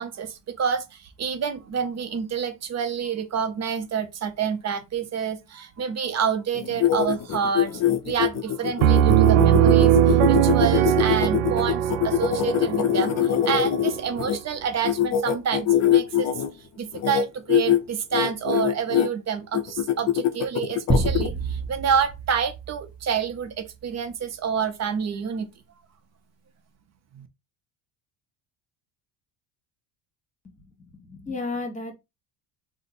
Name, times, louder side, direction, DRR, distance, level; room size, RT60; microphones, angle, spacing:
voice 1, 0.0-16.3 16.8-25.5 27.1-27.3, right 7 dB, 35° right, 0.7 m, -28 dB
sound 1, 6.5-14.4 14.8-16.5 16.9-17.2 17.5-17.8 18.1-19.1 19.5-21.3, left 10 dB, 35° left, 0.5 m, -23 dB
Piano, 8.8-14.3, right 11 dB, 70° right, 0.5 m, -20 dB
sound 2, 20.9-23.7, right 2 dB, ahead, 0.8 m, -28 dB
voice 2, 30.4-31.9, left 3 dB, 15° left, 1.3 m, -34 dB
3.2 x 2.1 x 4.1 m
cardioid pair, 110°, 49 cm